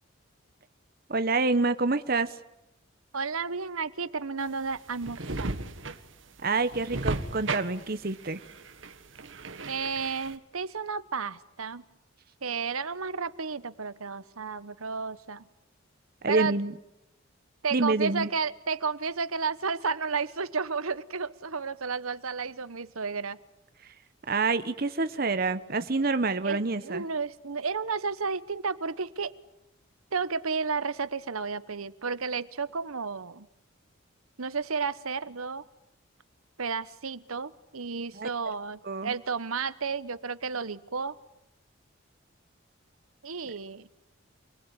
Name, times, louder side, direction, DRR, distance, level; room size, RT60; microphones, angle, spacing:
voice 1, 1.1-2.4 6.4-8.4 16.2-16.7 17.7-18.3 24.3-27.1 38.1-38.3 38.8-39.1, right 3 dB, 45° right, 11 dB, 1.0 m, -27 dB
voice 2, 3.1-5.5 9.7-11.8 12.4-15.5 16.3-16.6 17.6-23.4 26.4-29.3 30.1-33.5 34.4-35.6 36.6-41.2 43.2-43.9, right 5 dB, 90° right, 15 dB, 1.1 m, -32 dB
sound 1, 4.4-10.3, right 2 dB, 65° right, 1.6 m, -36 dB
29.0 x 20.0 x 9.8 m, 0.86 s
head